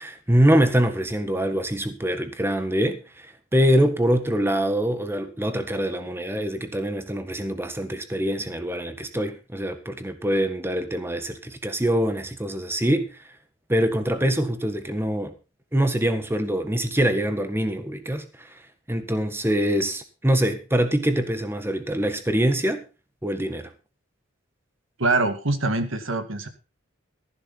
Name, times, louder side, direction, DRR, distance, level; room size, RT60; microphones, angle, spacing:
voice 1, 0.0-13.1 13.7-15.3 15.7-18.5 18.9-22.8 23.2-23.7, equal, 10° right, 1.6 m, -24 dB
voice 2, 25.0-26.5, right 2 dB, 70° right, 2.1 m, -24 dB
14.5 x 11.5 x 4.2 m
head